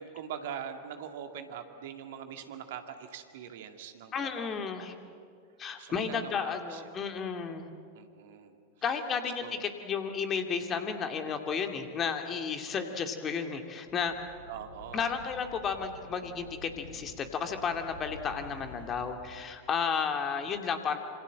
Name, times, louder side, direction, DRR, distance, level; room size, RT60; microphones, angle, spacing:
voice 1, 0.0-4.7 5.8-7.1 7.9-8.5 9.4-9.6 14.5-15.1, right 8 dB, 55° right, 6 dB, 2.1 m, -43 dB
voice 2, 4.1-4.9 5.6-7.7 8.8-14.1 14.9-21.0, left 6 dB, 25° left, 6 dB, 2.4 m, -33 dB
sound 1, 13.9-19.1, left 2 dB, 75° left, 6.1 m, -49 dB
26.5 x 25.5 x 7.7 m, 2.3 s
figure-of-eight pair, 90°, 0 cm